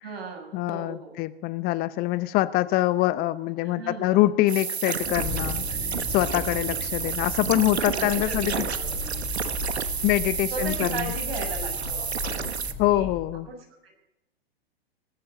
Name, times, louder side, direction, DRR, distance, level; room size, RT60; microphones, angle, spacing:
voice 1, 0.0-1.2 3.6-4.2 7.9-9.0 10.5-12.3 12.9-13.1 13.5-13.9, right 4 dB, 65° right, 2 dB, 7.1 m, -36 dB
voice 2, 0.5-5.6 6.1-8.5 10.0-11.1 12.8-13.5, left 16 dB, 30° left, 16 dB, 0.8 m, -24 dB
sound 1, 4.5-12.7, right 6 dB, 85° right, 1.2 m, -30 dB
sound 2, 5.0-13.3, left 2 dB, 10° right, 7.4 m, -35 dB
19.0 x 14.5 x 3.9 m, 0.88 s
hypercardioid pair, 115°, 31 cm